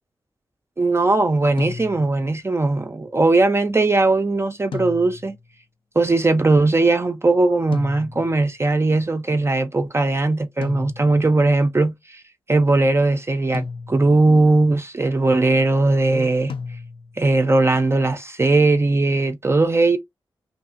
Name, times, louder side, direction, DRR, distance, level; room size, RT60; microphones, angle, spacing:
voice 1, 0.8-5.4 6.0-12.2 12.5-16.5 17.2-20.0, right 2 dB, 30° right, 0.4 m, -19 dB
sound 1, 1.6-2.3 4.7-5.5 7.7-8.5 10.6-11.4 13.5-14.3 16.5-17.3, left 5 dB, 65° left, 0.3 m, -34 dB
2.8 x 2.3 x 2.5 m
cardioid pair, 45°, 9 cm